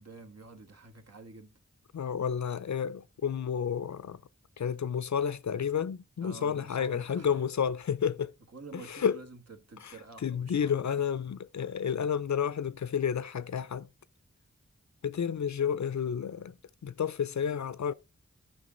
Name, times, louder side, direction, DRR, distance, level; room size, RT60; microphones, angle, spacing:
voice 1, 0.0-1.6 6.2-7.5 8.5-10.9, right 3 dB, 60° right, 1.5 m, -49 dB
voice 2, 1.9-4.2 4.6-8.3 8.7-9.2 10.2-13.9 15.0-16.6 16.8-17.9, left 7 dB, 75° left, 0.5 m, -31 dB
11.0 x 6.0 x 3.8 m
wide cardioid pair, 55°, 29 cm